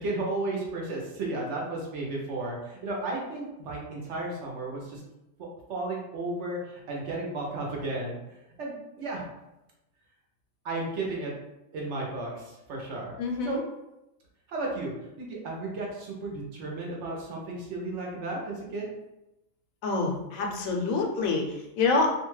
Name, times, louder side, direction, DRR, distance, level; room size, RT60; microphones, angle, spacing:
voice 1, 0.0-5.0 5.4-8.2 8.6-9.2 10.6-11.3 11.7-13.1 13.4-13.6 14.5-18.9, right 2 dB, 65° right, -2 dB, 0.9 m, -34 dB
voice 2, 13.2-13.6 19.8-22.1, left 3 dB, 80° left, 2 dB, 1.0 m, -27 dB
2.6 x 2.3 x 3.0 m, 0.92 s
omnidirectional pair, 1.4 m